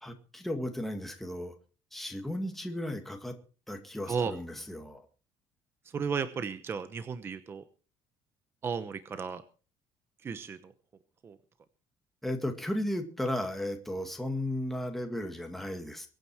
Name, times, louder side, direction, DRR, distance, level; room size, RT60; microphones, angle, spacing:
voice 1, 0.0-1.5 1.9-3.4 3.7-5.0 12.2-16.1, left 1 dB, ahead, 4 dB, 2.0 m, -35 dB
voice 2, 5.9-7.6 8.6-9.4 10.2-10.7 11.2-11.4, right 6 dB, 25° right, 11 dB, 0.9 m, -34 dB
23.0 x 9.2 x 4.7 m, 0.37 s
cardioid pair, 170°, 9 cm